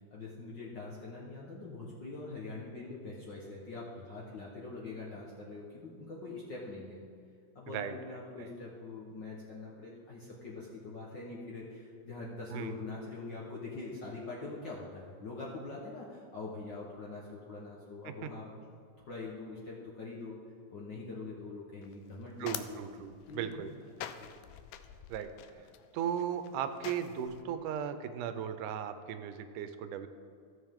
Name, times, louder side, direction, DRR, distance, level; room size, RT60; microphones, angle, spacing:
voice 1, 0.1-7.0 7.5-18.4 19.1-20.4 20.7-24.3, left 3 dB, 55° left, -5 dB, 1.3 m, -44 dB
sound 1, 21.8-27.4, left 10 dB, 90° left, 2.1 m, -47 dB
voice 2, 22.4-23.7 25.1-25.3 25.9-30.1, right 8 dB, 85° right, 10 dB, 2.2 m, -37 dB
15.5 x 7.0 x 3.6 m, 2.4 s
omnidirectional pair, 3.5 m